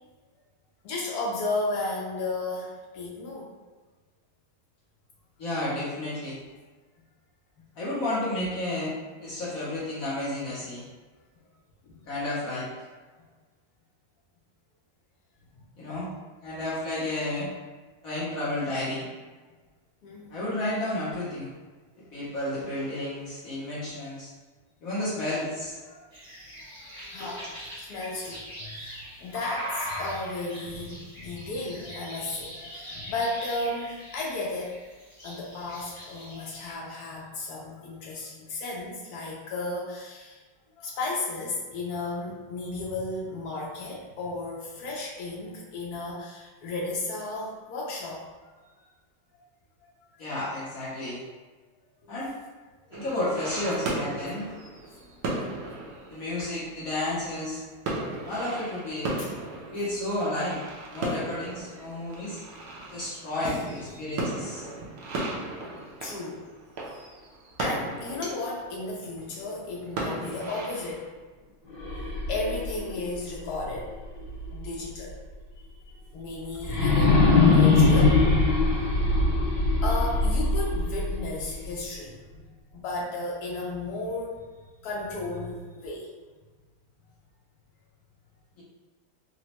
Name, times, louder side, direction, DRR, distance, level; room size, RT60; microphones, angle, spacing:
voice 1, 0.8-3.5 7.6-7.7 11.8-12.0 20.0-20.4 22.6-22.7 25.8-26.0 26.6-27.5 27.7-34.8 35.2-40.4 40.8-48.2 48.6-48.7 49.3-49.4 50.1-50.2 53.6-53.8 55.9-56.1 59.2-59.3 63.4-64.0 66.0-66.4 67.6-71.0 72.3-73.9 74.5-75.1 76.1-78.2 79.8-82.4 82.7-84.4 84.8-86.1, left 2 dB, 90° left, -3 dB, 0.8 m, -34 dB
voice 2, 5.4-6.4 7.8-10.8 12.1-12.7 15.8-16.1 16.4-17.5 18.0-19.1 20.3-21.5 22.1-24.3 24.8-25.8 27.2-27.3 50.2-51.2 52.0-52.4 52.9-54.5 56.1-57.6 58.2-59.2 59.7-60.6 60.9-62.4 62.9-64.7 68.2-68.3, left 1 dB, 60° left, -8 dB, 0.9 m, -31 dB
sound 1, 26.1-36.7, equal, 25° right, 0.4 m, -41 dB
sound 2, 52.9-71.1, right 2 dB, 70° right, 0.8 m, -36 dB
sound 3, 71.7-74.7 75.1-75.2 76.6-81.7, left 3 dB, 25° left, 1.0 m, -22 dB
4.0 x 2.1 x 2.8 m, 1.4 s
omnidirectional pair, 2.2 m